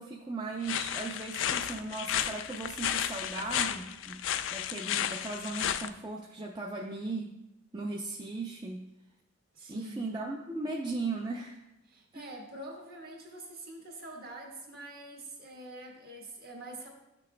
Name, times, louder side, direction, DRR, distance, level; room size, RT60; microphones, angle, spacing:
voice 1, 0.0-4.2 4.5-7.3 7.7-8.9 9.7-11.6 12.1-12.2, right 3 dB, 20° right, -1 dB, 0.5 m, -37 dB
sound 1, 0.6-5.9, left 10 dB, 60° left, 0.3 m, -33 dB
voice 2, 9.5-10.0 11.9-16.9, right 1 dB, 45° right, 0 dB, 1.4 m, -45 dB
12.0 x 6.1 x 2.2 m, 0.90 s
head